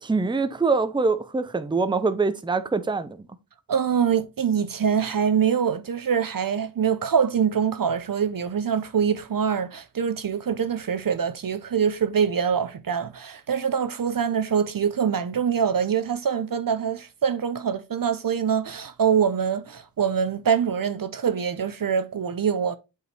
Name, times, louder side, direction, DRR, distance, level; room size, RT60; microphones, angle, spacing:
voice 1, 0.0-3.2, right 4 dB, 10° right, 0.6 m, -24 dB
voice 2, 3.7-22.8, right 7 dB, 50° right, 0.6 m, -24 dB
7.9 x 4.6 x 3.3 m
wide cardioid pair, 70°, 45 cm